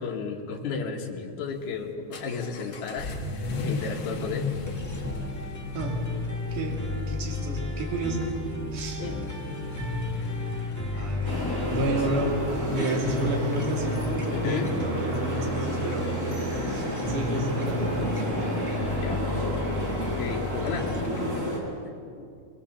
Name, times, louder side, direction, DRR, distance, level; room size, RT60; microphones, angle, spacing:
voice 1, 0.0-4.6 9.0-9.2 10.2-10.3 10.9-11.1 11.9-12.0 14.3-14.7 19.0-19.5 19.9-21.0 22.2-22.3, left 5 dB, 70° left, 0 dB, 3.2 m, -34 dB
Vehicle / Accelerating revving vroom, 1.5-21.3, left 3 dB, 45° left, 2.0 m, -39 dB
sound 1, 4.7-21.0, left 2 dB, 10° left, 1.0 m, -33 dB
voice 2, 7.1-8.2 8.7-9.0 10.9-11.4 11.7-12.4 12.7-14.1 14.4-16.1 16.7-18.6, right 2 dB, 70° right, 0 dB, 4.0 m, -31 dB
sound 2, 11.2-21.6, equal, 25° right, 4.1 m, -30 dB
22.5 x 21.5 x 7.2 m, 2.4 s
omnidirectional pair, 3.8 m